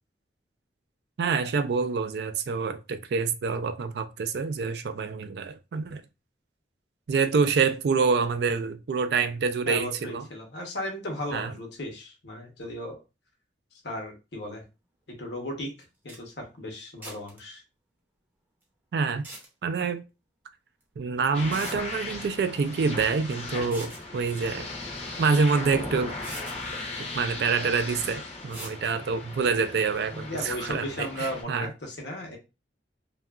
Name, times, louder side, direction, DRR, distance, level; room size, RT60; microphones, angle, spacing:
voice 1, 1.2-6.0 7.1-10.3 11.3-11.5 18.9-19.3 19.6-20.0 21.0-24.7 25.2-26.2 27.1-31.7, right 5 dB, 60° right, 0.3 m, -26 dB
voice 2, 9.7-13.0 13.8-14.6 15.1-15.7 16.0-17.6 23.5-23.7 30.1-32.4, left 1 dB, 70° left, 0.9 m, -36 dB
sound 1, 15.8-15.9 16.1-16.2 17.0-17.4 19.1-19.5 20.8-20.9 21.5-21.8 23.6-24.0 25.6-25.7 26.2-26.6 28.5-28.8, right 1 dB, 10° right, 0.6 m, -41 dB
sound 2, 21.3-31.4, left 2 dB, 35° left, 0.6 m, -37 dB
2.8 x 2.3 x 2.3 m
head